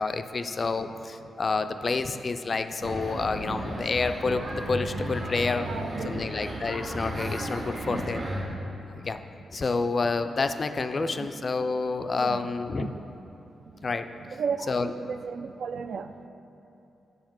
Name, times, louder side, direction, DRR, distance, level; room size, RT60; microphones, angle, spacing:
voice 1, 0.0-5.7 6.0-8.2 8.8-9.2 9.5-12.9 13.8-14.0 14.7-14.9, left 4 dB, 40° left, 9 dB, 0.3 m, -29 dB
sound 1, 2.8-8.4, equal, 45° right, 1.5 m, -34 dB
voice 2, 5.6-6.2 9.7-9.8 11.0-11.3 12.2-12.5 12.8-13.1 14.3-16.3, right 6 dB, 65° right, 10 dB, 0.3 m, -35 dB
7.2 x 4.9 x 6.0 m, 2.9 s
cardioid pair, 110°, 0 cm